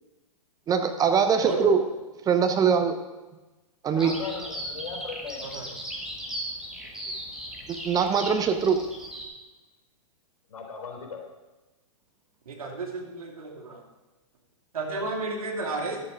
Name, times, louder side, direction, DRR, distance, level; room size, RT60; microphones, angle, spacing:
voice 1, 0.7-1.8 2.3-3.0 3.8-4.2 7.7-8.8, right 6 dB, 20° right, 8 dB, 0.7 m, -22 dB
voice 2, 1.4-1.7 5.4-5.7 12.5-13.8 14.7-16.0, right 3 dB, 80° right, 2 dB, 2.5 m, -32 dB
voice 3, 3.9-5.6 10.5-11.2, left 5 dB, 75° left, 1 dB, 3.7 m, -38 dB
Bird vocalization bird call bird song, 4.0-9.3, equal, 5° right, 1.7 m, -37 dB
12.5 x 7.5 x 5.1 m, 1.1 s
hypercardioid pair, 125°, 18 cm